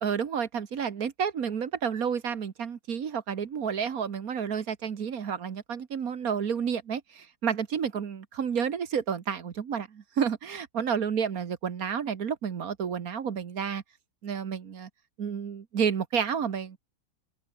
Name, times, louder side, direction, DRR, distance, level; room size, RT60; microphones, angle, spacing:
voice 1, 0.0-13.8 14.2-14.9 15.2-16.8, right 7 dB, 50° right, 1.6 m, -30 dB
open air
omnidirectional pair, 2.3 m